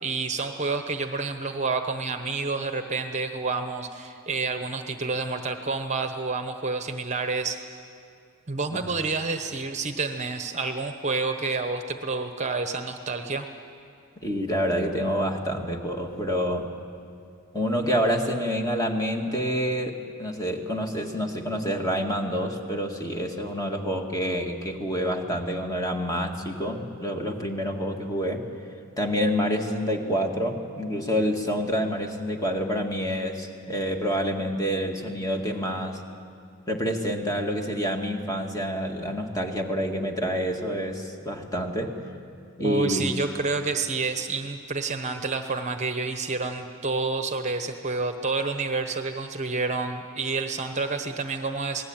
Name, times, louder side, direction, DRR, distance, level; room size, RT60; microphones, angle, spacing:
voice 1, 0.0-7.6 8.5-13.5 42.6-51.8, right 3 dB, 30° right, 7 dB, 1.0 m, -29 dB
voice 2, 14.2-16.7 17.5-28.4 29.0-36.0 36.7-42.0 42.6-43.2, equal, 15° left, 2 dB, 2.0 m, -27 dB
28.0 x 19.5 x 8.9 m, 2.4 s
head